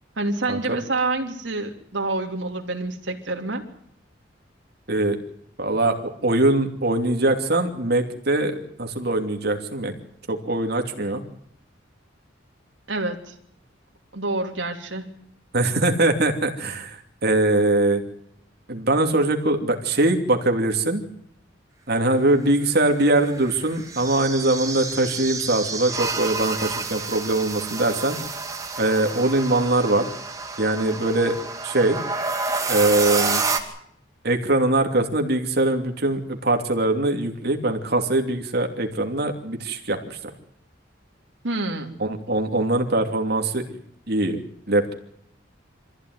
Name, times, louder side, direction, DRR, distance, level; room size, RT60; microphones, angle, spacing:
voice 1, 0.2-3.7 12.9-13.3 14.1-15.1 41.4-42.0, right 2 dB, 70° right, 3 dB, 3.2 m, -27 dB
voice 2, 5.6-9.9 10.3-11.2 15.5-18.0 18.7-21.0 21.9-28.2 28.8-30.1 30.6-31.3 31.6-32.0 32.7-33.4 34.2-40.3 42.0-43.6 44.1-44.4 44.7-44.9, right 2 dB, 55° right, 4 dB, 2.8 m, -22 dB
sound 1, 22.7-33.6, right 4 dB, 20° right, 2.5 m, -29 dB
25.0 x 15.0 x 9.6 m, 0.71 s
head